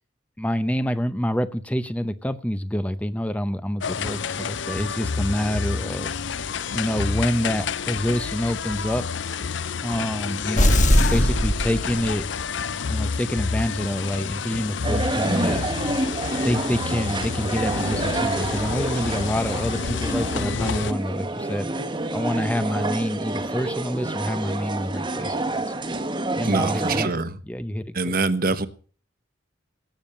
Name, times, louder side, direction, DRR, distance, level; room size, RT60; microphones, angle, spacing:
voice 1, 0.4-6.1 6.7-9.0 9.8-10.8 11.1-12.3 12.9-15.7 16.4-25.6 26.3-27.2 27.5-28.2, equal, 5° left, 0.7 m, -27 dB
sound 1, 3.8-20.9, left 5 dB, 70° left, 0.6 m, -29 dB
sound 2, 10.6-12.4, equal, 40° left, 1.5 m, -20 dB
sound 3, 14.8-27.1, right 2 dB, 25° right, 1.3 m, -28 dB
voice 2, 26.4-27.4 27.9-28.7, right 3 dB, 50° right, 1.2 m, -24 dB
18.0 x 7.3 x 8.6 m
head